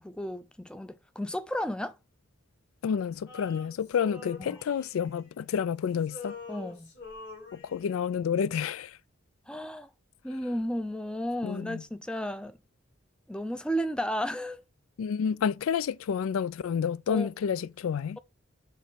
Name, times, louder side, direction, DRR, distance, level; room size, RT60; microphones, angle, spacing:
voice 1, 0.0-2.0 4.4-4.6 6.5-6.9 9.5-9.9 10.2-12.6 13.3-14.6 17.1-17.3, equal, 5° left, 0.4 m, -33 dB
voice 2, 2.8-6.3 7.5-9.0 11.4-11.8 15.0-18.2, left 7 dB, 85° left, 0.3 m, -29 dB
Male singing, 3.3-5.7 6.0-8.1, left 4 dB, 55° left, 3.2 m, -45 dB
6.6 x 3.1 x 5.0 m
head